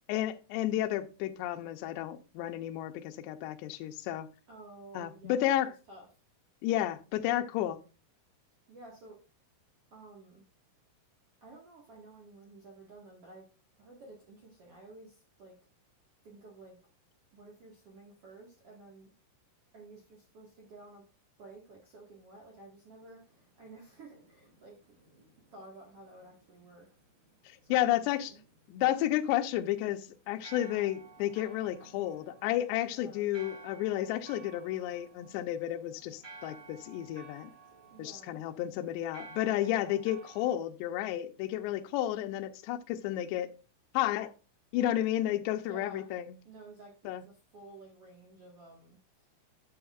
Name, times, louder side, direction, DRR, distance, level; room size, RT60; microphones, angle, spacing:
voice 1, 0.1-4.3 4.9-5.7 6.6-7.8 27.5-28.3 28.7-37.5 38.0-43.5 43.9-44.3 44.7-46.3 47.1-47.2, left 13 dB, 85° left, 6 dB, 2.5 m, -32 dB
voice 2, 4.5-6.1 8.7-9.2 9.9-10.4 11.4-13.5 13.7-15.5 16.2-16.8 17.3-19.1 19.7-21.1 21.4-25.0 25.5-26.9 27.6-28.4 32.8-33.3 37.9-38.4 45.5-46.1 46.4-49.3, right 2 dB, 90° right, -2 dB, 1.3 m, -52 dB
sound 1, 22.8-40.5, right 4 dB, 35° right, 1.8 m, -55 dB
9.8 x 8.9 x 2.5 m, 0.34 s
omnidirectional pair, 5.8 m